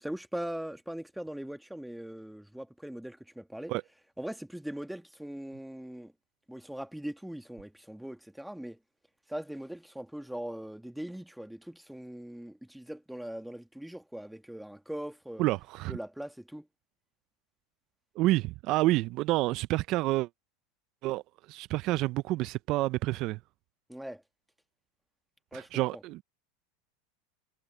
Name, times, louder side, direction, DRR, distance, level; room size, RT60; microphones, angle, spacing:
voice 1, 0.0-3.7 4.2-6.1 6.5-8.8 9.3-15.5 15.9-16.7 23.9-24.2 25.5-26.0, right 1 dB, ahead, 1.8 m, -40 dB
voice 2, 15.4-16.0 18.2-20.3 21.0-21.2 21.5-23.4 25.5-26.2, right 18 dB, 50° right, 0.6 m, -28 dB
hypercardioid pair, 105°, 0 cm